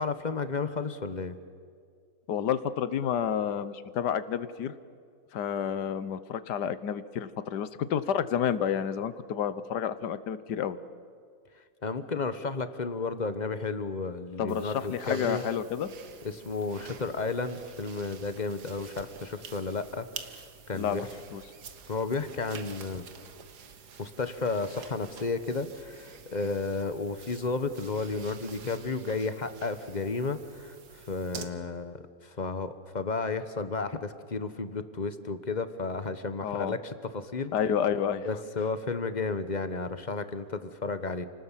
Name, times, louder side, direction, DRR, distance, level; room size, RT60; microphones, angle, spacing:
voice 1, 0.0-1.3 11.8-15.4 16.2-20.1 20.7-21.1 21.9-23.0 24.0-37.5 38.2-41.3, left 4 dB, 30° left, 11 dB, 1.1 m, -32 dB
voice 2, 2.3-4.7 5.3-10.8 14.4-15.9 20.8-21.4 36.4-36.7 37.5-38.3, left 8 dB, 85° left, 14 dB, 1.6 m, -30 dB
sound 1, 14.5-31.4, right 6 dB, 75° right, 1.9 m, -48 dB
29.5 x 19.0 x 7.4 m, 2.1 s
omnidirectional pair, 1.7 m